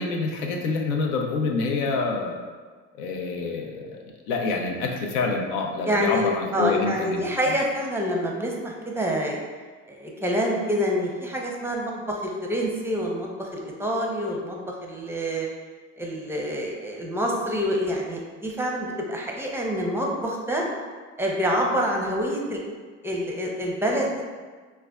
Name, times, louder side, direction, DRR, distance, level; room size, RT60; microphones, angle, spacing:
voice 1, 0.0-2.4 2.9-4.0 4.3-7.2, left 4 dB, 75° left, 1 dB, 0.6 m, -27 dB
voice 2, 5.9-9.4 9.9-15.5 16.0-20.6 21.2-22.6 23.0-24.2, equal, 5° right, -1 dB, 0.6 m, -27 dB
4.8 x 2.2 x 2.3 m, 1.5 s
hypercardioid pair, 70°, 37 cm